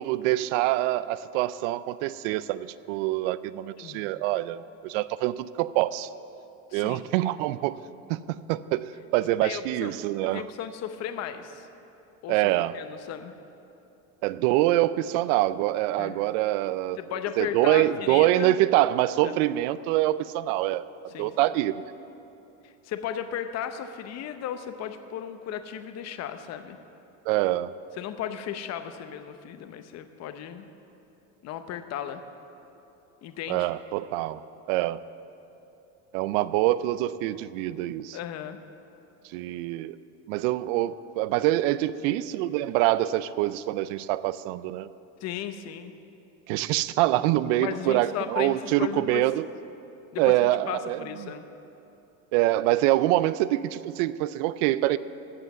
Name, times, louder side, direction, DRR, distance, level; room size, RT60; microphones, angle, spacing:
voice 1, 0.0-6.1 6.7-7.8 8.1-10.4 12.3-12.8 14.2-17.0 17.4-20.9 21.2-21.7 27.3-27.7 33.5-34.4 34.7-35.0 36.1-38.2 39.2-40.0 40.3-44.9 46.5-49.5 50.2-51.3 52.3-55.0, right 15 dB, 75° right, 17 dB, 0.5 m, -25 dB
voice 2, 6.7-7.1 9.4-9.9 10.2-11.7 12.2-13.3 16.0-16.2 17.0-18.6 19.2-19.4 21.1-21.4 22.6-26.8 28.0-30.7 31.4-32.2 33.2-33.7 38.1-38.6 45.2-45.9 47.6-49.2 50.1-51.5, left 9 dB, 40° left, 9 dB, 0.8 m, -35 dB
14.5 x 5.6 x 8.2 m, 2.9 s
supercardioid pair, 130°, 38 cm